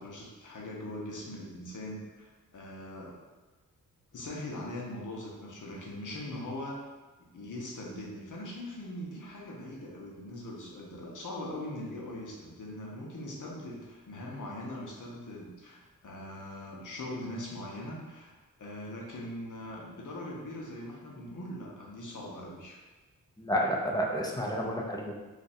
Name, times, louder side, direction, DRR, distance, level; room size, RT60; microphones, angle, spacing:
voice 1, 0.0-3.2 4.1-6.8 7.3-22.8, left 1 dB, 55° left, -2 dB, 0.9 m, -41 dB
voice 2, 23.4-25.2, equal, 10° left, -2 dB, 0.5 m, -30 dB
2.5 x 2.5 x 4.2 m, 1.2 s
cardioid pair, 75°, 36 cm